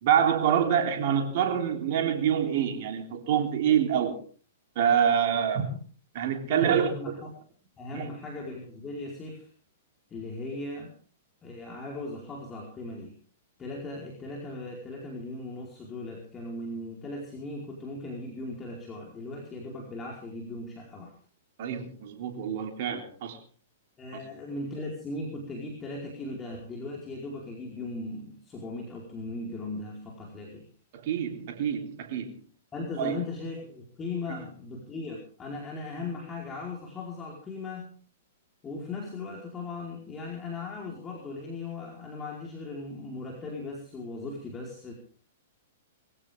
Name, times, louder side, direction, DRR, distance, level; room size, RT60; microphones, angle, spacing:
voice 1, 0.0-4.2 4.7-5.8 6.1-7.1 7.9-8.1 21.6-23.4 24.1-24.2 30.9-32.4 33.0-33.1 34.3-34.5, right 8 dB, 50° right, 3.4 m, -26 dB
voice 2, 6.4-7.3 7.8-9.5 10.1-10.9 11.4-13.1 13.6-21.1 24.0-30.6 32.7-37.9 38.6-44.9, left 2 dB, 20° left, 4.7 m, -38 dB
22.5 x 16.0 x 3.6 m
figure-of-eight pair, 110°, 0 cm